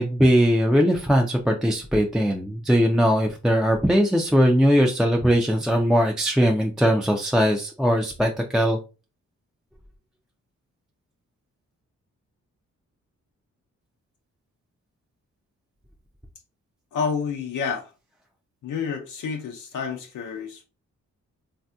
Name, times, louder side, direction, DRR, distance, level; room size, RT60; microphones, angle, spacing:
voice 1, 0.0-8.8, equal, ahead, 0.3 m, -20 dB
voice 2, 16.9-17.9 18.6-20.6, left 6 dB, 80° left, 0.6 m, -29 dB
3.4 x 2.7 x 2.2 m
cardioid pair, 95°, 31 cm